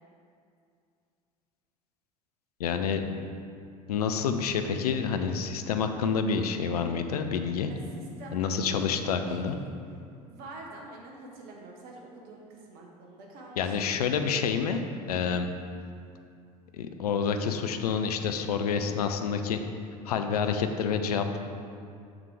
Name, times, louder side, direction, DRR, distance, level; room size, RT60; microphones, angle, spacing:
voice 1, 2.6-3.0 3.9-7.7 8.3-9.6 13.6-14.8 15.1-15.5 16.7-19.6 20.0-21.4, left 6 dB, 70° left, 7 dB, 0.5 m, -28 dB
voice 2, 7.7-8.9 9.2-9.6 10.3-13.8, right 2 dB, 50° right, -1 dB, 1.0 m, -46 dB
6.7 x 6.0 x 3.3 m, 2.4 s
figure-of-eight pair, 70°, 21 cm